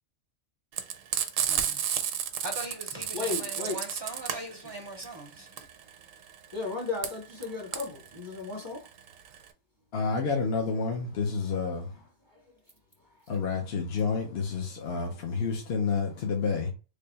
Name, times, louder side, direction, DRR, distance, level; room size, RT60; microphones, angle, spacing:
Frying (food), 0.7-9.5, right 9 dB, 85° right, 1.0 m, -32 dB
voice 1, 1.5-1.8 2.4-5.5 13.3-13.4, right 2 dB, 35° right, 0.4 m, -40 dB
voice 2, 3.1-3.8 6.5-8.8, left 4 dB, 25° left, 0.8 m, -34 dB
voice 3, 9.9-12.0 13.3-16.7, left 5 dB, 60° left, 0.9 m, -29 dB
3.4 x 2.2 x 3.9 m
omnidirectional pair, 1.3 m